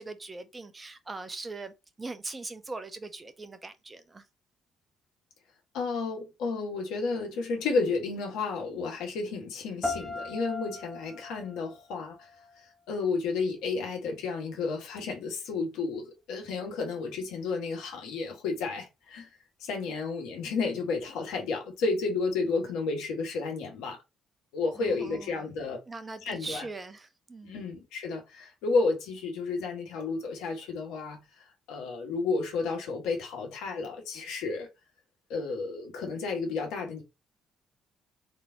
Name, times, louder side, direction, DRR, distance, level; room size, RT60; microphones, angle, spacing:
voice 1, 0.0-4.2 24.8-25.5 25.9-27.7, right 3 dB, 25° right, 1.1 m, -41 dB
voice 2, 5.7-12.1 12.9-19.3 19.6-24.0 24.5-25.8 26.2-26.7 27.4-31.2 31.7-34.7 35.3-37.0, left 4 dB, 75° left, 1.7 m, -32 dB
sound 1, 9.8-12.8, left 3 dB, 5° left, 1.1 m, -38 dB
4.1 x 3.8 x 2.9 m
hypercardioid pair, 50°, 0 cm